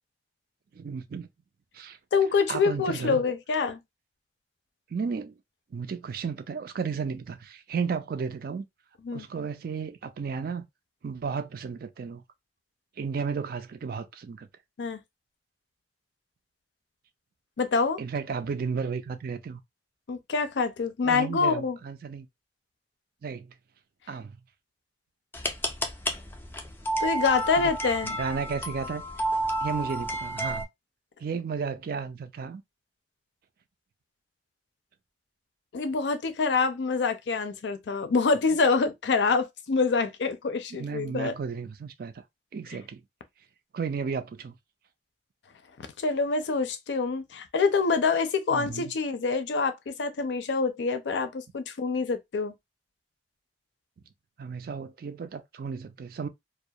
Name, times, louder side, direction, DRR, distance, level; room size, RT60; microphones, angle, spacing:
voice 1, 0.7-1.3 1.7-2.0 2.5-3.2 4.9-5.4 5.7-8.6 9.1-10.7 11.0-12.2 13.0-14.5 18.0-19.6 21.0-22.3 23.2-23.6 24.1-24.4 27.6-27.7 28.0-29.0 29.6-30.7 31.2-32.6 40.7-42.2 42.5-43.0 43.7-44.6 48.5-48.9 54.4-56.3, right 5 dB, 55° right, 0.4 m, -33 dB
voice 2, 2.1-3.8 9.0-9.3 14.8-15.0 17.6-18.0 20.1-21.8 27.0-28.2 35.7-41.3 45.8-52.5, left 4 dB, 80° left, 0.4 m, -26 dB
sound 1, 25.3-30.7, right 1 dB, 10° left, 0.4 m, -31 dB
2.3 x 2.1 x 2.6 m
head